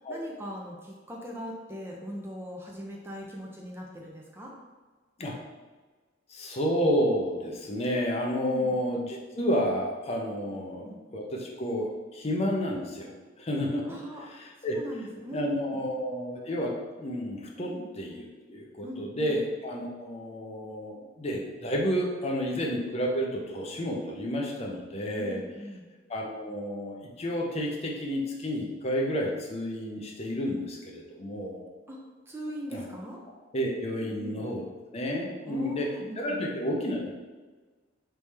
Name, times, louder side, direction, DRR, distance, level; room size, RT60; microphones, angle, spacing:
voice 1, 0.1-4.5 8.4-8.8 10.5-11.0 13.9-14.3 14.7-15.8 17.6-17.9 18.8-19.4 22.4-22.6 25.1-25.9 31.9-32.0 32.3-33.2 34.0-34.4 35.5-36.4, equal, 10° right, -2 dB, 0.5 m, -40 dB
voice 2, 6.3-13.1 13.4-14.0 14.3-14.8 15.3-25.4 26.1-31.6 32.7-32.8 33.5-34.6 34.9-35.9 36.2-37.1, equal, 30° left, -1 dB, 0.6 m, -31 dB
4.1 x 3.3 x 3.3 m, 1.3 s
head